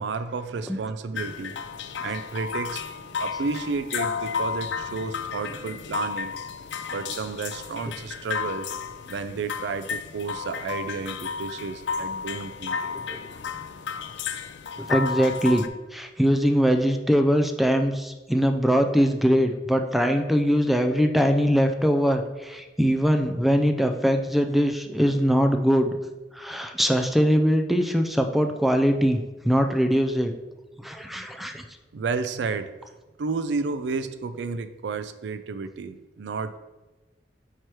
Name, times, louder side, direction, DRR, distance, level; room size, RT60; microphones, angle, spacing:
voice 1, 0.0-1.6 2.0-2.8 3.2-6.3 6.9-8.7 9.1-13.0 31.9-32.7 33.2-36.6, right 4 dB, 75° right, 11 dB, 0.4 m, -31 dB
sound 1, 1.2-15.7, left 6 dB, 80° left, 0.4 m, -33 dB
voice 2, 14.8-15.6 15.9-26.0 26.3-30.3 30.8-31.6, equal, ahead, 5 dB, 0.4 m, -22 dB
4.8 x 4.4 x 4.6 m, 1.1 s
head